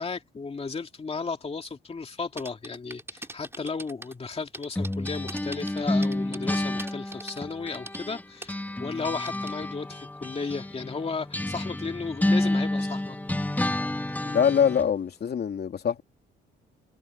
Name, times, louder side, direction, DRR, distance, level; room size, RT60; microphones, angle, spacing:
voice 1, 0.0-13.2, left 4 dB, 30° left, 2.5 m, -34 dB
sound 1, 2.4-4.1 4.5-8.0 8.4-8.5 9.3-9.5, right 2 dB, 10° right, 3.4 m, -40 dB
sound 2, 4.7-8.2 8.5-14.9, left 1 dB, 10° left, 1.5 m, -29 dB
voice 2, 14.3-16.0, left 7 dB, 55° left, 3.2 m, -24 dB
cardioid pair, 90°, 20 cm